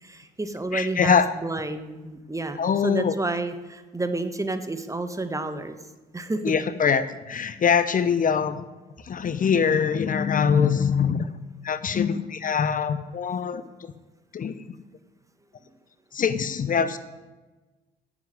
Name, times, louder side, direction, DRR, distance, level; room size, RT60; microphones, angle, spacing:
voice 1, 0.0-5.8 6.1-6.5, right 2 dB, 15° right, 9 dB, 1.4 m, -30 dB
voice 2, 0.7-1.3 2.6-3.1 6.4-8.6 9.0-11.3 11.6-13.9 14.3-14.6 16.1-17.0, left 6 dB, 45° left, 13 dB, 0.8 m, -23 dB
9.6 x 7.3 x 9.3 m, 1.2 s
supercardioid pair, 65°, 19 cm